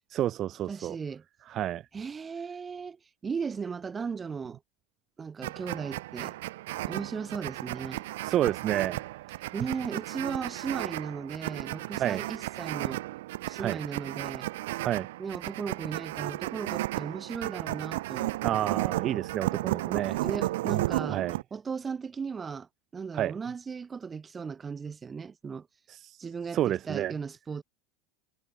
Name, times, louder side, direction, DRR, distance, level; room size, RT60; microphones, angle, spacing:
voice 1, 0.1-1.0 1.5-1.8 8.2-9.1 12.0-12.2 13.6-13.8 14.8-15.1 18.4-20.2 21.1-21.4 23.1-23.3 25.9-26.2 26.5-27.1, right 12 dB, 30° right, 0.3 m, -29 dB
voice 2, 0.7-1.2 1.9-3.0 3.2-4.6 5.2-6.4 6.7-8.0 9.5-13.0 13.5-14.5 15.2-18.4 20.1-21.2 21.5-22.7 22.9-25.7 26.2-27.6, right 5 dB, 15° right, 1.4 m, -36 dB
sound 1, 5.4-21.4, right 17 dB, 80° right, 0.5 m, -34 dB
supercardioid pair, 165°, 0 cm